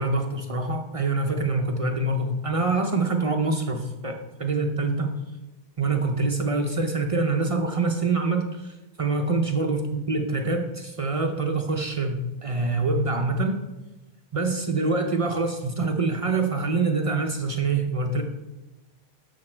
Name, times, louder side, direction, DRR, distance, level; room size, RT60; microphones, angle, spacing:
voice 1, 0.0-5.1 5.8-13.6 14.3-18.2, right 3 dB, 45° right, 4 dB, 0.4 m, -25 dB
6.5 x 6.3 x 4.3 m, 1.1 s
omnidirectional pair, 1.2 m